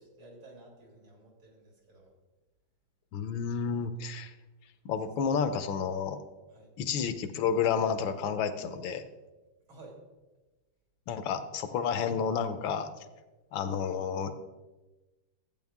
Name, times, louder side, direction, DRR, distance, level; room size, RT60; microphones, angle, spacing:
voice 1, 0.0-2.1 6.5-6.7 9.7-10.0, right 2 dB, 75° right, -2 dB, 4.0 m, -53 dB
voice 2, 3.1-4.3 4.8-6.2 6.8-9.0 11.1-12.9 13.5-14.3, left 6 dB, 75° left, 10 dB, 1.5 m, -30 dB
14.0 x 8.8 x 3.6 m, 1.1 s
omnidirectional pair, 2.3 m